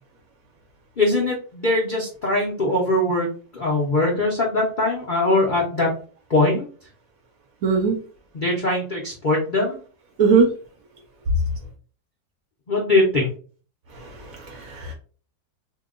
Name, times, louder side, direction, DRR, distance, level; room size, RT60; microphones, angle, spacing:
voice 1, 1.0-3.3 3.5-5.9 6.3-6.7 8.3-9.8 12.7-13.3, left 2 dB, 65° left, -4 dB, 0.4 m, -21 dB
voice 2, 7.6-8.0 10.2-10.5 13.9-14.9, right 5 dB, 70° right, 2 dB, 0.8 m, -20 dB
2.8 x 2.2 x 3.6 m, 0.41 s
omnidirectional pair, 1.9 m